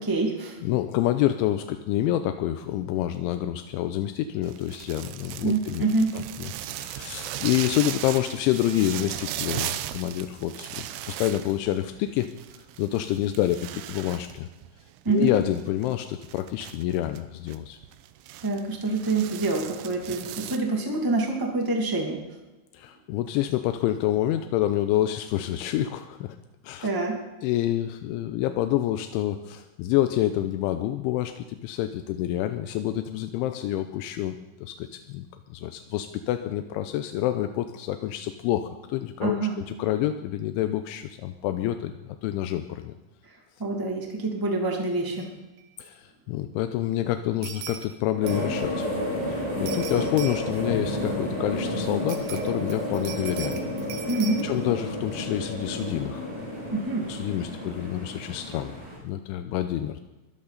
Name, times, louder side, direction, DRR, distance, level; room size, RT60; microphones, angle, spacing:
voice 1, 0.0-0.6 5.4-6.1 15.0-15.3 18.4-22.2 26.8-27.2 39.2-39.5 43.6-45.3 54.1-54.4 56.7-57.1, right 3 dB, 25° right, 1 dB, 0.4 m, -26 dB
voice 2, 0.6-5.9 6.1-12.3 12.8-14.5 15.1-17.8 22.7-26.4 26.6-26.9 27.4-39.4 39.7-41.9 42.2-42.9 45.8-48.9 49.3-53.6 54.4-56.3 57.1-58.7 59.0-60.0, left 13 dB, 85° left, 8 dB, 3.1 m, -28 dB
sound 1, 4.4-20.6, right 13 dB, 90° right, 3.3 m, -37 dB
sound 2, 45.2-45.3 45.6-45.7 47.4-47.9 48.3-48.6 49.7-50.6 52.1-54.4, right 9 dB, 70° right, 2.2 m, -39 dB
sound 3, 48.2-59.0, left 1 dB, 10° right, 6.2 m, -31 dB
22.0 x 15.0 x 4.1 m, 1.1 s
omnidirectional pair, 5.5 m